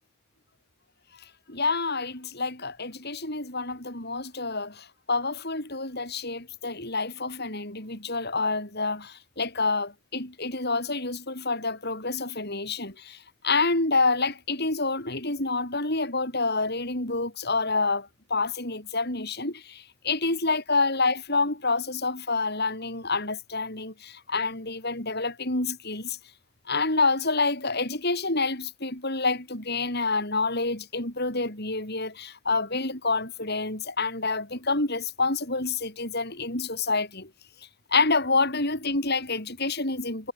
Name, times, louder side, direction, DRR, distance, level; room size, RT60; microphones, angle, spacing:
voice 1, 1.5-13.2 13.4-26.2 26.7-37.3 37.9-40.3, left 3 dB, 50° left, 6.4 m, -28 dB
head